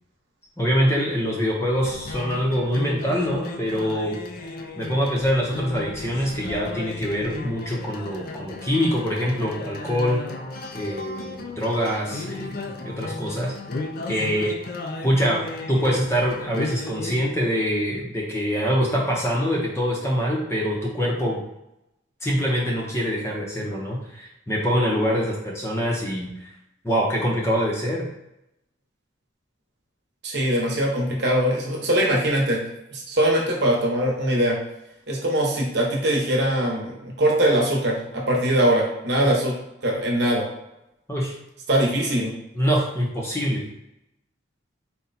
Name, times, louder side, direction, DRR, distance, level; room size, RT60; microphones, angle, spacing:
voice 1, 0.6-4.2 4.8-10.2 10.7-13.5 14.1-14.5 15.0-15.4 15.7-21.4 22.2-26.5 26.8-28.1 39.2-39.3 41.1-41.3 42.5-43.6, equal, 15° left, -3 dB, 0.7 m, -24 dB
sound 1, 1.8-17.2, left 3 dB, 45° left, 0.4 m, -35 dB
voice 2, 30.2-32.6 32.9-34.6 35.1-39.5 39.8-40.4 41.7-42.3, right 1 dB, 55° right, -2 dB, 1.0 m, -22 dB
4.2 x 2.2 x 4.0 m, 0.87 s
head